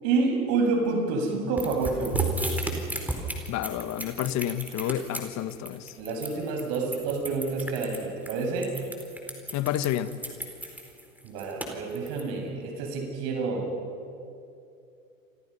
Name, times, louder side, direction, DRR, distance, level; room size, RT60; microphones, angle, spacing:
voice 1, 0.0-2.3 6.0-8.8 11.2-13.7, right 4 dB, 55° right, 7.6 m, -28 dB
sound 1, 1.6-12.2, right 1 dB, 5° right, 4.5 m, -35 dB
voice 2, 3.5-5.9 9.5-10.1, left 12 dB, 40° left, 1.6 m, -30 dB
29.5 x 25.0 x 5.8 m
hypercardioid pair, 90°, 41 cm